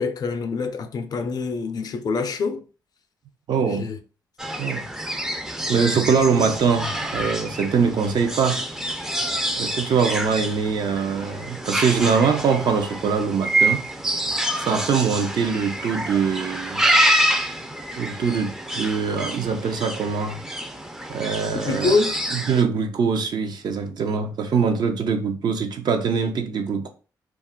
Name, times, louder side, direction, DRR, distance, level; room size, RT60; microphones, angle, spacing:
voice 1, 0.0-2.6 3.7-4.0 21.5-22.2, left 4 dB, 55° left, 0.4 m, -25 dB
voice 2, 3.5-3.9 4.6-4.9 5.7-8.7 9.6-13.9 14.7-16.9 18.0-20.4 21.1-21.9 22.3-26.9, right 6 dB, 65° right, 0.5 m, -23 dB
sound 1, 4.4-22.6, right 1 dB, 5° right, 0.4 m, -27 dB
2.4 x 2.1 x 3.5 m
cardioid pair, 80°, 8 cm